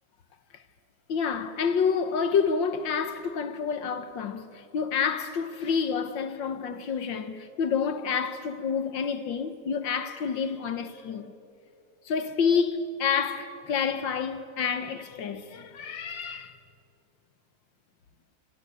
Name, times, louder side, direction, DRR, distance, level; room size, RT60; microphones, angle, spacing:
voice 1, 1.1-11.3 12.1-16.6, left 6 dB, 65° left, 1.8 m, -28 dB
27.0 x 21.5 x 9.5 m
omnidirectional pair, 2.2 m